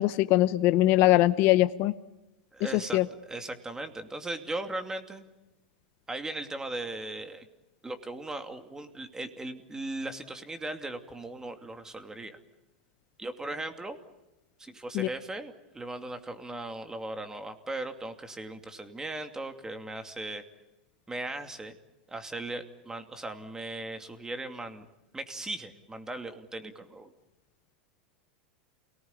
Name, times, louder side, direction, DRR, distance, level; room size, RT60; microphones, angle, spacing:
voice 1, 0.0-1.9 2.7-3.0 14.9-15.1, left 16 dB, 50° left, 13 dB, 0.9 m, -22 dB
voice 2, 2.5-3.0 3.3-5.2 6.1-7.5 7.8-12.4 13.2-14.0 14.6-20.4 21.1-21.7 22.1-24.9 25.1-27.1, right 2 dB, 10° right, 7 dB, 2.7 m, -38 dB
28.5 x 19.0 x 9.7 m, 1.0 s
hypercardioid pair, 110°, 5 cm